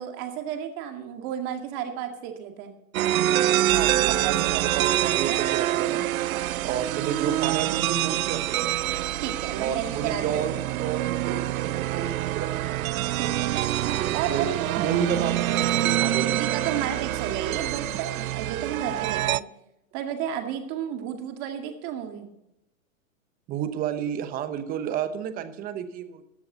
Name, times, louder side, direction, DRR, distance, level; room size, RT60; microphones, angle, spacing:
voice 1, 0.0-2.7 4.0-4.5 5.2-5.5 6.3-6.6 9.2-10.7 11.2-11.5 13.2-13.7 14.1-15.1 16.2-19.4 19.9-22.3, right 9 dB, 35° right, 4 dB, 2.1 m, -32 dB
sound 1, 2.9-19.4, right 13 dB, 85° right, 0.5 m, -26 dB
voice 2, 3.7-6.1 6.6-8.8 9.6-12.8 13.9-14.5 14.8-15.7 16.0-16.4 23.5-26.2, right 8 dB, 20° right, 10 dB, 1.0 m, -31 dB
14.5 x 10.5 x 4.0 m, 0.86 s
hypercardioid pair, 140°, 40 cm